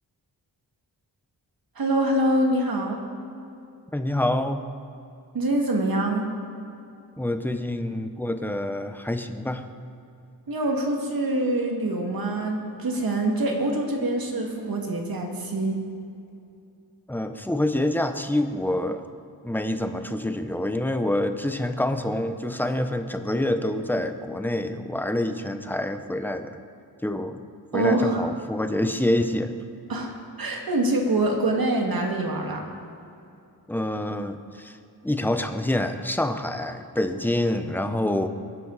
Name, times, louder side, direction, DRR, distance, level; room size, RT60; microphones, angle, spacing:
voice 1, 1.8-3.0 5.3-6.3 10.5-15.8 27.7-28.2 29.9-32.6, right 1 dB, 60° right, 1 dB, 2.3 m, -25 dB
voice 2, 3.9-4.7 7.2-9.7 17.1-19.1 19.4-26.5 27.0-27.4 27.7-29.5 33.7-34.8 35.0-38.3, left 1 dB, 5° left, 8 dB, 0.8 m, -26 dB
21.5 x 11.0 x 4.1 m, 2.6 s
wide cardioid pair, 110°, 39 cm